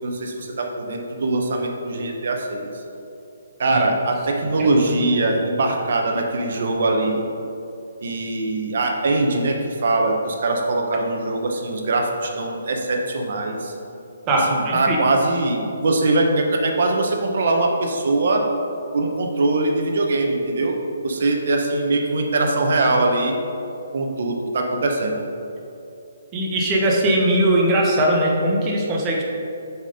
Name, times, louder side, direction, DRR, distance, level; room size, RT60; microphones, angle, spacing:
voice 1, 0.0-2.7 3.6-7.2 8.0-13.7 14.3-18.4 18.9-20.8 21.0-23.4 23.9-25.2, right 2 dB, 45° right, 2 dB, 0.9 m, -22 dB
voice 2, 14.3-15.0 26.3-29.2, right 1 dB, 15° right, -2 dB, 0.7 m, -20 dB
6.8 x 4.3 x 5.0 m, 2.7 s
hypercardioid pair, 175°, 0 cm